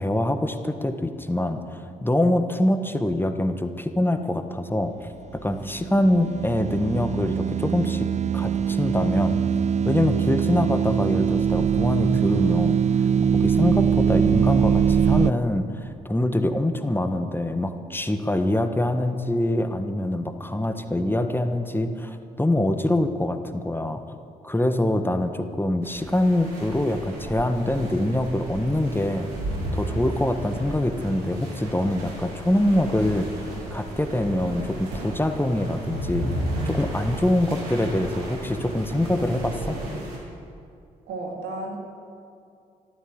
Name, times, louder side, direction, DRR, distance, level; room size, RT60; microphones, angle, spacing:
voice 1, 0.0-4.9 5.3-8.1 8.3-9.4 9.8-12.8 13.3-24.0 24.4-29.3 29.7-36.3 36.6-39.8, left 1 dB, 10° left, 8 dB, 1.5 m, -24 dB
sound 1, 5.5-15.3, right 7 dB, 40° right, 0.5 m, -22 dB
sound 2, 25.8-40.2, right 1 dB, 90° right, 2.6 m, -33 dB
voice 2, 41.1-41.8, right 2 dB, 70° right, 0 dB, 2.5 m, -32 dB
13.5 x 13.0 x 7.9 m, 2.5 s
hypercardioid pair, 40°, 18 cm